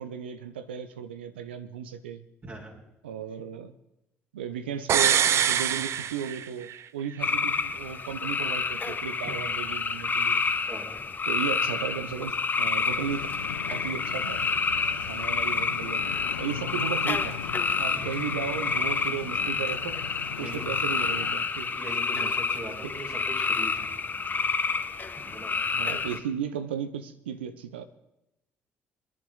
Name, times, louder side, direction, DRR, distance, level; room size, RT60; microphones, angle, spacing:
voice 1, 0.0-2.2 3.0-3.8 4.3-10.5 11.3-13.3 13.7-14.4 14.9-17.4 17.8-20.1 20.4-21.7 22.2-22.3 22.8-22.9 25.7-27.8, right 8 dB, 85° right, 0.9 m, -35 dB
voice 2, 2.4-2.8 10.7-11.1 18.0-18.1 20.4-20.7 21.6-23.9 25.2-25.6, right 1 dB, 35° right, 5.1 m, -41 dB
sound 1, 4.9-6.8 7.1-7.2, right 9 dB, 55° right, 0.7 m, -24 dB
sound 2, 7.2-26.2, left 5 dB, 35° left, 1.7 m, -29 dB
sound 3, 12.9-21.4, left 9 dB, 90° left, 0.7 m, -40 dB
24.0 x 11.0 x 3.9 m
hypercardioid pair, 50°, 6 cm